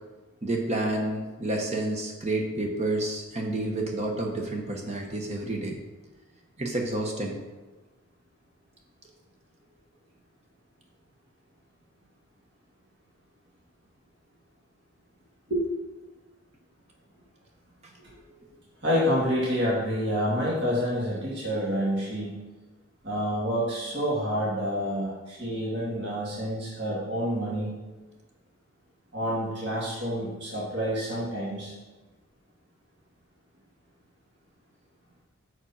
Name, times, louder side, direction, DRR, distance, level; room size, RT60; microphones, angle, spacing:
voice 1, 0.4-5.8 6.6-7.4, right 2 dB, 30° right, 1 dB, 0.8 m, -29 dB
voice 2, 18.8-22.4 23.0-27.7 29.1-31.7, equal, 50° right, -7 dB, 2.0 m, -28 dB
6.1 x 5.0 x 5.5 m, 1.2 s
head